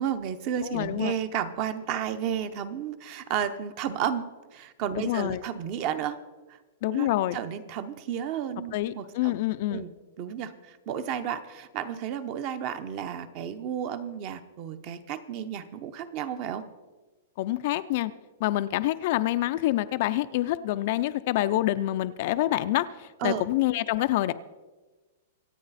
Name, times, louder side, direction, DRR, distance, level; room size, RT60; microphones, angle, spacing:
voice 1, 0.0-6.2 6.9-9.3 9.7-9.9 10.2-16.7 23.2-23.5, right 9 dB, 30° right, 12 dB, 0.8 m, -32 dB
voice 2, 0.6-1.1 5.0-5.4 6.8-7.4 8.7-9.9 17.4-18.1 18.4-24.3, left 15 dB, 40° left, 12 dB, 0.4 m, -27 dB
25.5 x 8.7 x 4.1 m, 1.2 s
supercardioid pair, 170°, 0 cm